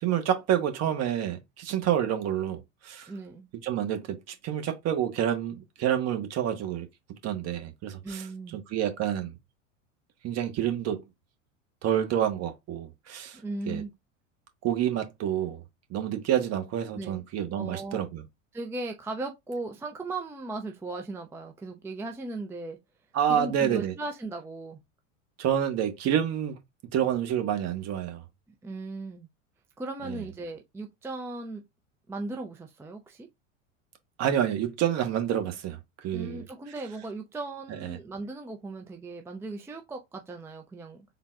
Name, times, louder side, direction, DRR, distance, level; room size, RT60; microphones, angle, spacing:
voice 1, 0.0-3.1 3.6-6.9 7.2-8.3 8.5-9.3 10.2-11.0 11.8-13.4 13.7-13.8 14.6-15.6 15.9-18.2 23.1-23.9 25.4-26.6 26.9-28.2 30.0-30.2 34.2-36.4 37.8-38.0, right 10 dB, 40° right, 1.1 m, -28 dB
voice 2, 3.1-3.5 8.0-8.6 13.4-13.9 17.0-17.2 17.5-18.0 18.5-22.8 23.3-24.8 28.6-29.3 29.8-31.6 32.1-33.3 36.1-41.0, right 2 dB, 5° right, 0.5 m, -37 dB
3.9 x 2.2 x 3.7 m
hypercardioid pair, 95°, 39 cm